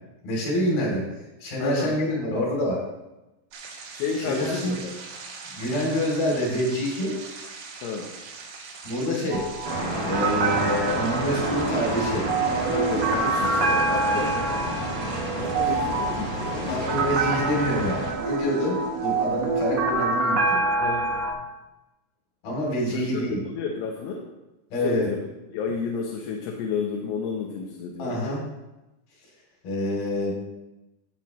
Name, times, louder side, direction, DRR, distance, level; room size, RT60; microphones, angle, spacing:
voice 1, 0.2-1.1 1.4-2.8 3.9-4.8 5.5-7.2 8.8-9.5 10.0-12.3 16.7-20.6 22.4-23.4 24.7-25.1 28.0-28.5 29.6-30.3, equal, 60° left, -2 dB, 4.5 m, -27 dB
voice 2, 1.6-2.0 3.9-4.9 7.8-8.1 12.7-14.4 15.4-17.2 20.8-21.1 22.9-23.2 23.5-24.3 24.8-25.2 25.5-28.1, left 5 dB, 75° left, 0 dB, 2.9 m, -31 dB
sound 1, 3.5-19.7, right 4 dB, 90° right, 4.1 m, -44 dB
sound 2, 9.3-21.3, right 3 dB, 70° right, 1.5 m, -26 dB
sound 3, 9.6-18.1, right 1 dB, 50° right, 0.5 m, -30 dB
13.0 x 7.9 x 3.1 m, 1.0 s
omnidirectional pair, 5.0 m